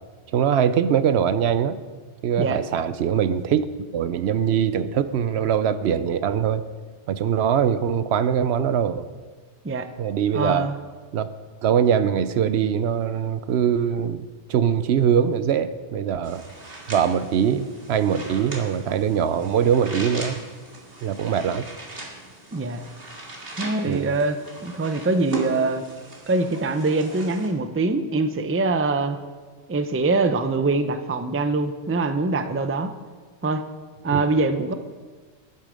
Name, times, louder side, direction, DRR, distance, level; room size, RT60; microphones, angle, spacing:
voice 1, 0.3-1.8 2.2-3.7 3.9-6.6 7.1-9.0 10.0-10.7 11.1-11.3 11.6-16.4 16.9-20.4 21.0-21.6 23.9-24.2 34.1-34.2, right 8 dB, 75° right, 13 dB, 0.9 m, -22 dB
voice 2, 10.3-10.8 22.5-22.8 23.6-25.8 26.3-29.2 29.7-32.9 33.4-33.6 34.0-34.7, right 3 dB, 20° right, 9 dB, 0.4 m, -23 dB
sound 1, 16.2-27.5, right 2 dB, 55° right, 2.3 m, -39 dB
13.5 x 11.0 x 5.1 m, 1.4 s
omnidirectional pair, 1.1 m